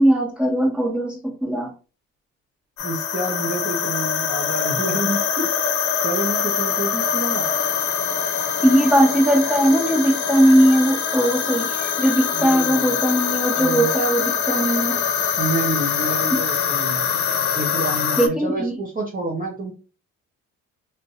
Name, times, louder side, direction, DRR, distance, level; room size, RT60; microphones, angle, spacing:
voice 1, 0.0-1.7 8.6-15.0 18.2-18.7, right 1 dB, 5° right, 1.5 m, -19 dB
sound 1, 2.8-18.3, left 7 dB, 70° left, 0.7 m, -24 dB
voice 2, 2.8-5.5 6.0-7.5 12.3-13.0 13.6-14.0 15.4-17.1 17.5-19.7, right 2 dB, 30° right, 0.9 m, -28 dB
3.8 x 2.5 x 2.6 m
cardioid pair, 90°, 30 cm